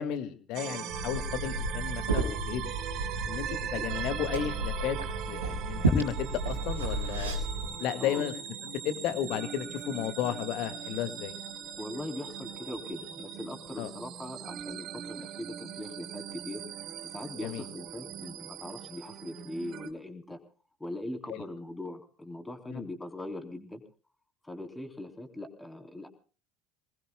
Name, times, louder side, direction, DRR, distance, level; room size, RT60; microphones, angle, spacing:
voice 1, 0.0-2.6 3.3-5.0 5.3-7.3 7.8-8.3 8.6-11.3 13.8-13.9 17.4-17.6 22.7-22.8, left 10 dB, 55° left, 11 dB, 2.0 m, -33 dB
sound 1, 0.5-19.9, right 9 dB, 50° right, 1.9 m, -40 dB
Liquid, 0.9-7.7, right 2 dB, 80° right, 3.8 m, -32 dB
voice 2, 8.0-8.3 11.8-16.6 17.0-20.4 20.8-23.8 24.4-26.1, left 1 dB, 10° left, 5 dB, 3.6 m, -41 dB
27.5 x 20.0 x 2.2 m, 0.39 s
figure-of-eight pair, 65°, 0 cm